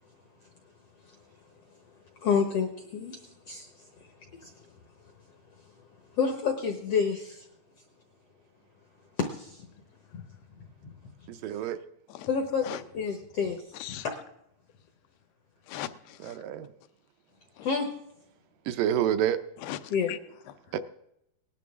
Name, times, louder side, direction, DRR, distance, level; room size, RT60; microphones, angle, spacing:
voice 1, 2.2-3.2 3.5-3.7 4.4-4.5 6.2-7.4 9.2-9.6 10.1-10.2 10.8-10.9 12.3-12.6 12.9-13.6 17.6-17.9 19.9-20.1, left 6 dB, 70° left, 1.4 m, -28 dB
voice 2, 11.3-11.8 16.2-16.7 18.7-19.4 20.7-20.8, right 10 dB, 80° right, 2.2 m, -28 dB
voice 3, 13.7-14.1 15.7-16.4 17.6-17.7 19.6-20.2 20.5-20.6, left 13 dB, 90° left, 2.6 m, -39 dB
18.5 x 11.0 x 3.6 m
omnidirectional pair, 4.2 m